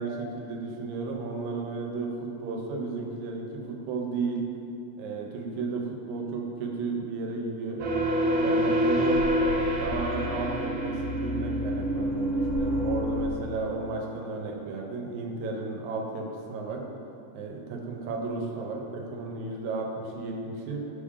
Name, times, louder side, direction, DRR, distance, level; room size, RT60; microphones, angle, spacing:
voice 1, 0.0-4.4 5.0-7.8 8.3-16.8 17.3-20.8, right 3 dB, 85° right, 1 dB, 2.1 m, -33 dB
sound 1, 7.8-13.4, equal, 60° right, 1.9 m, -26 dB
6.7 x 3.7 x 4.8 m, 2.6 s
omnidirectional pair, 3.3 m